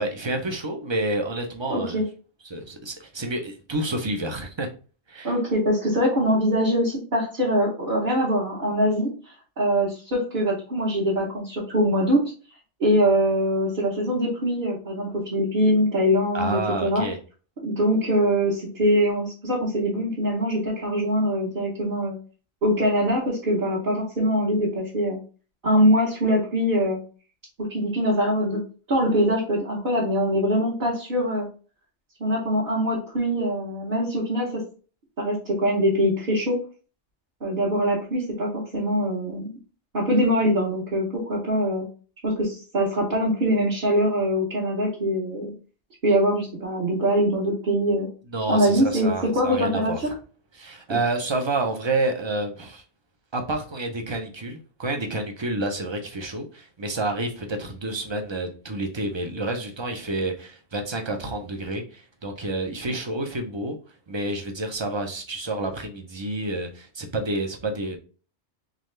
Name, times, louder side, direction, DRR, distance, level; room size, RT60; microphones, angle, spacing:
voice 1, 0.0-2.0 2.4-4.7 5.1-5.3 16.3-17.2 48.3-50.0 50.5-52.8 53.3-63.8 64.1-68.0, right 2 dB, 30° right, 4 dB, 0.6 m, -29 dB
voice 2, 1.7-2.0 5.2-9.1 9.6-12.2 12.8-17.0 17.6-22.2 22.6-25.2 25.6-27.0 27.7-28.6 28.9-31.5 32.2-34.6 35.2-36.6 37.4-39.6 39.9-41.8 42.2-45.5 46.0-48.1 48.5-49.9, equal, 50° right, -6 dB, 1.5 m, -23 dB
3.8 x 3.2 x 3.2 m, 0.37 s
omnidirectional pair, 1.2 m